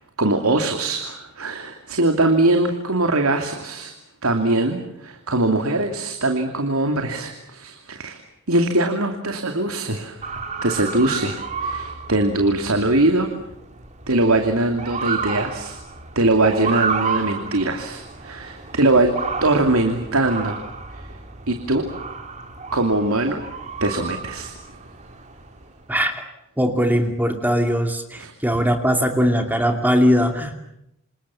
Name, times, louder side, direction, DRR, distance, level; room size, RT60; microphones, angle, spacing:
voice 1, 0.2-3.9 4.2-8.2 8.5-10.2 10.6-13.3 14.1-15.8 16.1-20.6 20.9-21.1 21.5-21.9 22.7-23.4 23.8-24.5 28.2-28.3, right 2 dB, 85° right, 5 dB, 2.8 m, -21 dB
Motor vehicle (road) / Siren, 10.2-25.8, right 5 dB, 35° right, 3.1 m, -31 dB
voice 2, 26.6-30.6, equal, 10° right, 5 dB, 2.6 m, -20 dB
28.0 x 27.5 x 7.2 m, 0.81 s
head